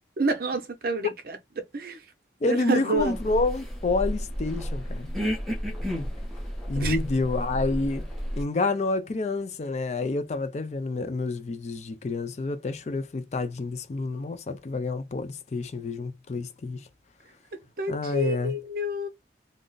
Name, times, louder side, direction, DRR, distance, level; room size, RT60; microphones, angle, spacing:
voice 1, 0.2-2.0 2.5-3.2 6.8-7.0 17.8-19.1, right 2 dB, 55° right, 0.6 m, -28 dB
voice 2, 2.4-5.1 6.7-8.1 8.3-16.8 17.9-18.5, left 3 dB, 40° left, 0.4 m, -28 dB
sound 1, 3.0-8.4, equal, ahead, 0.6 m, -32 dB
2.4 x 2.0 x 3.7 m
head